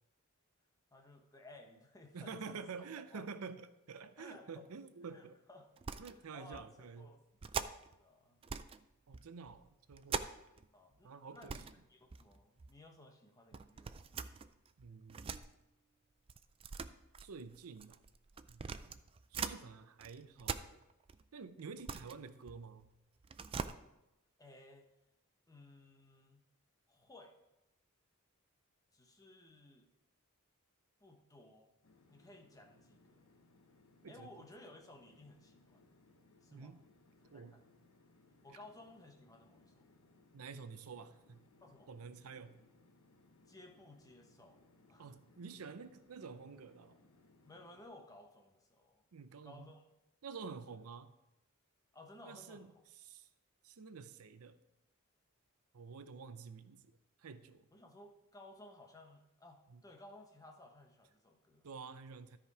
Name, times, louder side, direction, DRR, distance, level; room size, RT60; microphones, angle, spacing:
voice 1, 0.9-2.6 3.1-3.3 4.2-4.7 5.1-5.7 6.1-7.2 7.5-8.4 10.7-14.4 24.4-24.9 25.5-26.4 26.9-27.4 28.9-29.9 31.0-31.7 32.1-33.3 34.0-35.8 36.4-36.7 37.2-37.6 38.4-40.0 41.6-41.9 43.5-44.6 44.9-45.1 47.4-49.0 49.4-49.8 51.9-52.8 57.7-61.7, left 2 dB, 15° left, 3 dB, 1.1 m, -58 dB
voice 2, 2.1-5.4 6.0-7.1 9.1-10.3 11.0-11.6 14.8-15.5 17.2-18.0 18.5-19.0 19.3-20.8 21.3-22.9 34.0-34.3 36.5-36.8 37.3-37.6 40.3-41.4 41.9-42.6 45.0-47.0 49.1-49.7 50.2-51.1 52.2-53.3 53.6-54.6 55.7-56.8 57.2-57.7 59.7-59.8 61.6-62.4, right 5 dB, 80° right, 12 dB, 0.6 m, -49 dB
sound 1, 5.8-6.2 6.5-6.7 7.4-8.0 8.4-8.8 9.1-10.7 11.0-11.1 11.3-11.8 12.1-12.7 13.5-15.4 16.3-19.6 20.0-21.2 21.6-22.9 23.2-23.7, right 5 dB, 25° right, 0.3 m, -43 dB
sound 2, 31.8-47.8, left 2 dB, 75° left, 0.9 m, -67 dB
13.0 x 5.0 x 4.7 m, 0.94 s
head